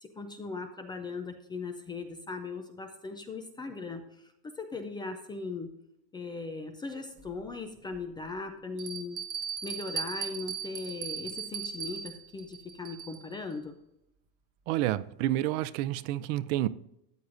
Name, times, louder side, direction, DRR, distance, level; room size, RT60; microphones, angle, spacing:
voice 1, 0.0-5.7 6.1-9.2 9.6-13.8, left 3 dB, 10° left, 6 dB, 0.3 m, -39 dB
Bell, 7.2-7.3 7.9-8.0 8.8-13.3, right 7 dB, 35° right, 1.2 m, -38 dB
voice 2, 14.7-16.7, right 14 dB, 65° right, 15 dB, 0.6 m, -29 dB
13.0 x 9.5 x 2.5 m, 0.80 s
cardioid pair, 160°, 41 cm